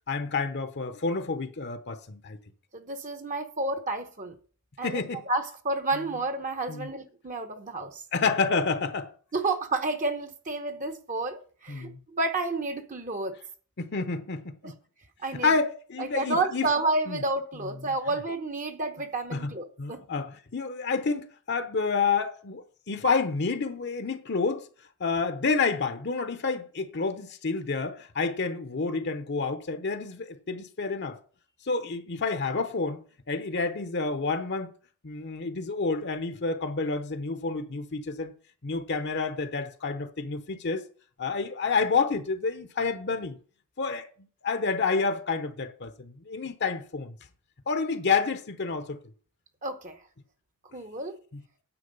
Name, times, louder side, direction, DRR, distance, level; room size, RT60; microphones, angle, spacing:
voice 1, 0.1-2.4 4.8-5.2 6.7-6.9 8.1-9.1 11.7-12.0 13.8-14.7 15.4-16.7 17.1-17.2 19.3-19.5 19.8-24.7 25.0-31.2 31.7-34.7 35.0-38.3 38.6-40.9 41.2-43.4 43.8-44.1 44.4-47.1 47.7-49.0, left 4 dB, 50° left, 0.8 m, -29 dB
voice 2, 2.7-4.3 4.8-8.0 9.3-13.4 14.6-14.7 15.2-15.5 16.0-20.0 49.6-50.0 50.7-51.2, right 2 dB, 35° right, 0.9 m, -30 dB
9.8 x 7.8 x 5.3 m
head